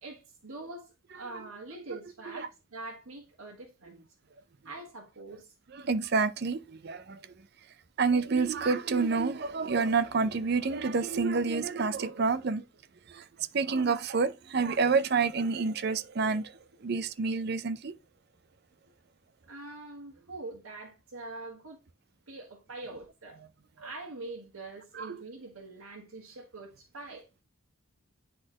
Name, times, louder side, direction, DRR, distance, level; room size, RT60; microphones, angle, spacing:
voice 1, 0.0-4.0 4.6-5.5 16.9-17.0 19.5-21.8 22.3-23.4 23.8-27.3, right 2 dB, 85° right, 1.5 m, -44 dB
voice 2, 5.7-7.2 8.0-12.6 13.1-13.2 13.5-16.5 16.8-17.9 24.9-25.2, right 4 dB, 50° right, 0.5 m, -28 dB
9.8 x 4.2 x 2.9 m
head